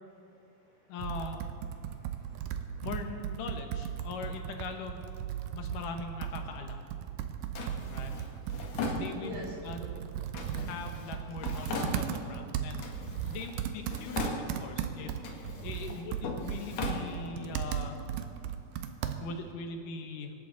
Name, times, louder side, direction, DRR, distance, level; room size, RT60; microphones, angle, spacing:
voice 1, 0.2-1.0 1.7-2.9 5.4-5.6 7.0-7.3 9.2-10.0, equal, 65° right, -4 dB, 5.4 m, -48 dB
voice 2, 0.9-1.5 2.8-5.0 5.5-6.8 7.9-8.1 8.9-9.9 10.4-12.9 13.3-15.2 15.6-18.0 19.2-20.3, left 4 dB, 75° left, 5 dB, 2.6 m, -41 dB
Computer keyboard, 1.0-19.5, right 9 dB, 85° right, 2.4 m, -37 dB
Drawer open or close, 7.6-9.6 10.3-12.4 12.8-13.6 13.8-14.8 15.2-17.6, left 3 dB, 60° left, 2.4 m, -39 dB
25.5 x 11.0 x 3.9 m, 2.6 s
omnidirectional pair, 3.9 m